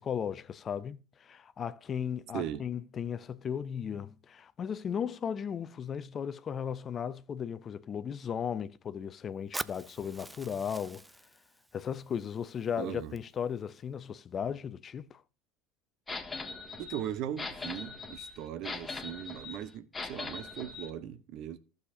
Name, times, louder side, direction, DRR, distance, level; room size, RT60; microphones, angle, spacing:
voice 1, 0.0-11.1 11.7-15.2, left 7 dB, 40° left, 0.5 m, -36 dB
Fire, 9.5-13.5, right 2 dB, 10° right, 0.4 m, -45 dB
voice 2, 12.8-13.2 16.8-21.6, right 10 dB, 60° right, 0.8 m, -39 dB
sound 1, 16.1-20.9, left 3 dB, 20° left, 1.6 m, -41 dB
15.0 x 6.5 x 2.7 m
hypercardioid pair, 70°, 0 cm